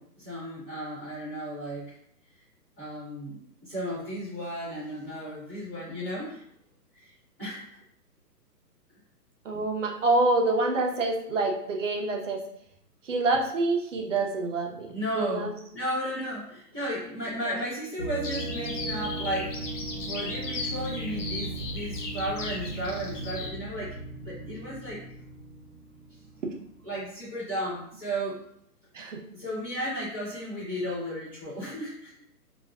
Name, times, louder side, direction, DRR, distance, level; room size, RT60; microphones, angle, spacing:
voice 1, 0.0-1.9 2.8-3.4 3.6-6.4 7.4-7.8 14.9-23.9 24.2-25.0 26.8-28.4 29.3-32.1, equal, 10° left, -14 dB, 0.6 m, -34 dB
voice 2, 9.4-12.4 13.0-15.5 17.5-17.6 28.9-29.2, right 2 dB, 50° right, 1 dB, 0.6 m, -27 dB
sound 1, 18.0-26.7, right 2 dB, 30° right, 0.9 m, -37 dB
Bird vocalization bird call bird song, 18.2-23.5, left 3 dB, 50° left, 0.6 m, -37 dB
3.3 x 2.5 x 2.3 m, 0.71 s
hypercardioid pair, 155°, 49 cm